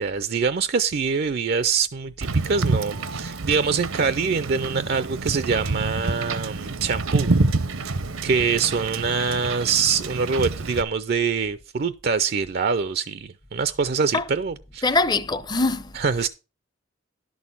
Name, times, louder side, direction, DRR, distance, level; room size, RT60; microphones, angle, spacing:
voice 1, 0.0-7.3 7.7-8.0 8.2-15.0 15.9-16.3, right 5 dB, 50° right, 0.4 m, -24 dB
Wind / Boat Water vehicle, 2.2-10.8, right 3 dB, 80° right, 0.8 m, -27 dB
voice 2, 14.8-15.9, left 3 dB, 20° left, 0.6 m, -22 dB
11.5 x 6.4 x 5.5 m
head